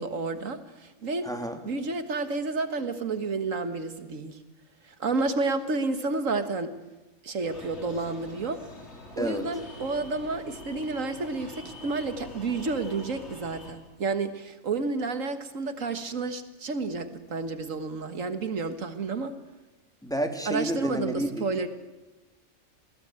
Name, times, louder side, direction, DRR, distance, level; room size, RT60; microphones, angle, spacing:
voice 1, 0.0-1.3 1.6-4.4 5.0-6.7 7.2-8.6 9.2-19.3 20.5-21.7, right 3 dB, 80° right, 10 dB, 2.0 m, -30 dB
voice 2, 1.2-1.6 9.2-9.5 20.0-21.5, right 1 dB, 5° left, 5 dB, 2.8 m, -30 dB
sound 1, 7.4-13.7, left 2 dB, 55° left, 4.3 m, -45 dB
28.5 x 19.0 x 9.0 m, 1.1 s
omnidirectional pair, 1.3 m